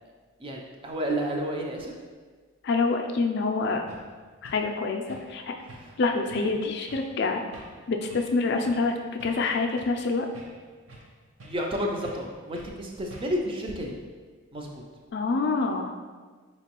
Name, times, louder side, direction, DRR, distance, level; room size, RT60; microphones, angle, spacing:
voice 1, 0.4-1.9 5.8-5.9 6.3-6.5 11.4-13.9 14.5-14.8, equal, 25° right, 1 dB, 0.4 m, -31 dB
voice 2, 2.6-3.8 4.4-5.5 6.0-7.4 7.9-8.9 9.2-10.3 15.1-15.9, left 3 dB, 55° left, 3 dB, 0.3 m, -26 dB
sound 1, 3.4-3.5 3.9-4.1 4.4-4.7 5.1-5.4 5.7-6.0 6.3-6.5 6.9-7.1 7.5-7.8 8.1-8.4 8.6-8.9 9.2-10.0 10.3-11.1 11.4-11.7 12.0-12.3 12.5-12.8 13.1-13.5, right 1 dB, 70° right, 0.7 m, -48 dB
4.3 x 3.0 x 2.9 m, 1.5 s
head